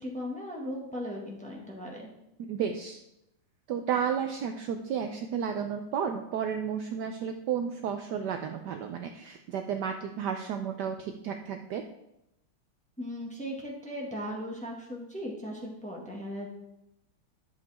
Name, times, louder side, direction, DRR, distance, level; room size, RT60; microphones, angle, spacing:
voice 1, 0.0-2.0 13.0-16.5, equal, 5° left, -2 dB, 1.4 m, -37 dB
voice 2, 2.4-3.0 3.7-11.8, right 7 dB, 80° right, 6 dB, 0.9 m, -32 dB
11.0 x 6.9 x 3.5 m, 0.86 s
omnidirectional pair, 2.4 m